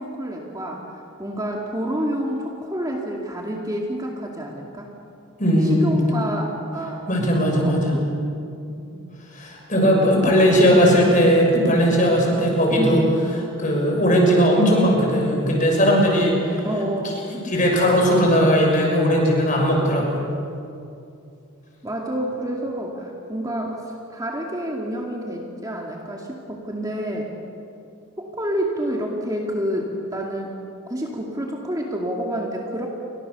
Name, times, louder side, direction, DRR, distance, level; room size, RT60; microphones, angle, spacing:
voice 1, 0.0-4.9 5.6-7.1 7.6-8.1 8.8-8.9 10.2-10.7 12.7-13.1 16.6-17.2 21.8-23.8 24.1-27.3 28.2-30.6 30.9-32.9, right 1 dB, 15° right, -1 dB, 2.3 m, -28 dB
voice 2, 5.4-5.9 7.1-7.9 9.3-13.0 13.6-16.7 17.3-20.1, equal, 35° left, 0 dB, 6.6 m, -18 dB
29.5 x 24.5 x 6.9 m, 2.6 s
head